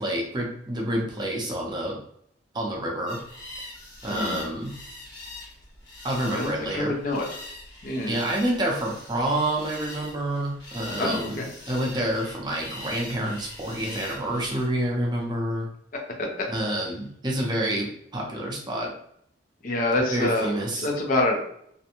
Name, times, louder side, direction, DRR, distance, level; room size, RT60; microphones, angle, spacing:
voice 1, 0.0-2.0 2.5-3.2 4.0-4.7 6.0-6.9 8.1-15.7 16.5-18.9 20.1-20.9, right 1 dB, 25° right, -2 dB, 0.5 m, -28 dB
sound 1, 3.1-14.7, left 1 dB, 70° left, 1.2 m, -42 dB
voice 2, 4.1-4.6 6.3-7.3 7.8-8.1 11.0-11.5 19.6-21.5, left 1 dB, 45° left, 0 dB, 0.6 m, -26 dB
2.5 x 2.1 x 2.8 m, 0.70 s
head